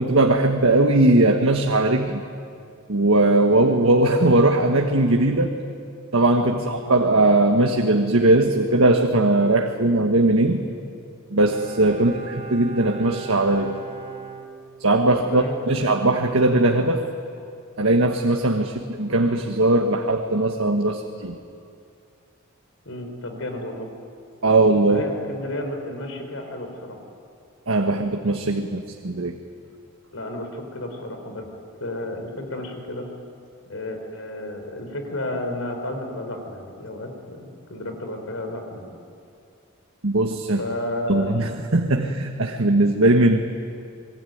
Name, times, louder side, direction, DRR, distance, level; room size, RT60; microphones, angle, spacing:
voice 1, 0.0-2.2 2.9-5.5 6.1-10.6 11.3-13.8 14.8-17.1 17.8-21.4 24.4-25.0 27.7-29.4 40.0-40.6 41.1-43.4, right 2 dB, 85° right, 3 dB, 1.5 m, -19 dB
Bowed string instrument, 11.5-15.2 15.5-15.6, right 5 dB, 30° right, 1.9 m, -38 dB
voice 2, 12.0-12.3 15.3-15.9 18.7-18.8 22.8-23.9 24.8-27.0 30.1-31.5 31.8-33.1 33.7-38.9 40.6-41.3, left 1 dB, 75° left, 5 dB, 4.7 m, -32 dB
26.0 x 22.5 x 9.4 m, 2.5 s
head